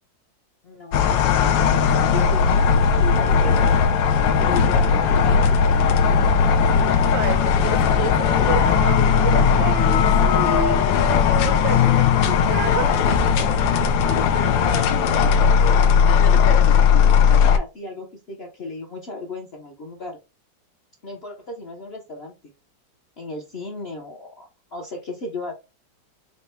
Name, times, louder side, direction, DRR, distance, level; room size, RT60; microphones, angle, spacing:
voice 1, 0.6-3.7 3.9-6.3 14.1-16.0 17.1-20.2 21.0-22.3 23.2-25.5, left 2 dB, 55° left, 0.7 m, -35 dB
sound 1, 0.9-17.6, left 6 dB, 85° left, 1.3 m, -17 dB
voice 2, 7.1-12.9, right 7 dB, 80° right, 1.2 m, -30 dB
4.4 x 2.1 x 4.2 m
omnidirectional pair, 2.0 m